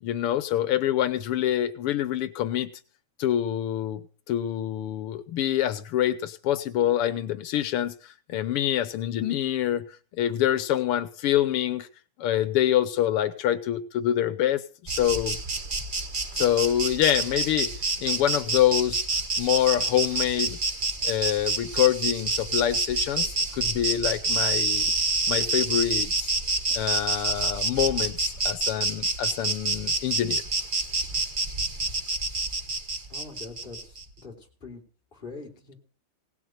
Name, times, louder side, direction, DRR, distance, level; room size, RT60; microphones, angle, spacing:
voice 1, 0.0-2.7 3.2-11.9 12.2-15.4 16.3-17.7 18.0-19.0 19.4-20.6 21.0-24.9 25.3-26.3 26.7-30.4, left 11 dB, 85° left, 13 dB, 1.8 m, -26 dB
Insect, 14.9-34.0, right 3 dB, 35° right, 0.9 m, -28 dB
voice 2, 33.1-34.8 35.1-35.8, left 3 dB, 25° left, 0 dB, 3.9 m, -43 dB
18.0 x 7.3 x 7.9 m, 0.40 s
omnidirectional pair, 2.4 m